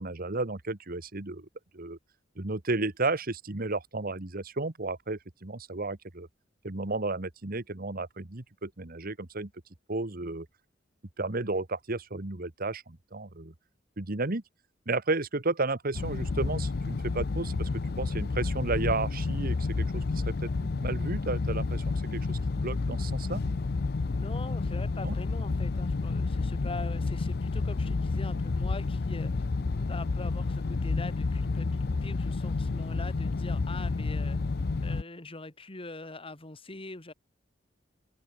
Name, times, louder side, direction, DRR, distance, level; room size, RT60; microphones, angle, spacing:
voice 1, 0.0-1.5 1.7-2.0 2.4-6.3 6.6-9.5 9.9-10.5 11.2-13.5 14.0-14.4 14.9-17.7 18.0-20.3 20.6-23.4 25.0-25.2, right 3 dB, 50° right, 1.6 m, -33 dB
sound 1, 15.9-35.0, left 3 dB, 55° left, 0.6 m, -30 dB
voice 2, 24.1-29.4 29.8-34.4 34.8-37.1, left 2 dB, 30° left, 2.3 m, -43 dB
open air
head